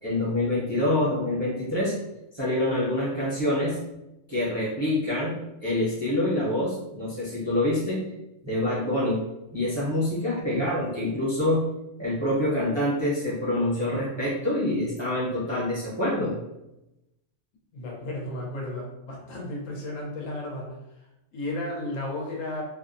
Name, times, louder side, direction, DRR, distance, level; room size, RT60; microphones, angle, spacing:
voice 1, 0.0-1.9 2.3-3.8 4.3-8.0 8.4-9.2 9.5-11.6 12.0-16.3, left 1 dB, 30° right, -9 dB, 0.5 m, -26 dB
voice 2, 17.7-20.7 21.3-22.6, left 1 dB, 90° left, -2 dB, 1.1 m, -33 dB
2.6 x 2.1 x 2.5 m, 0.92 s
omnidirectional pair, 1.3 m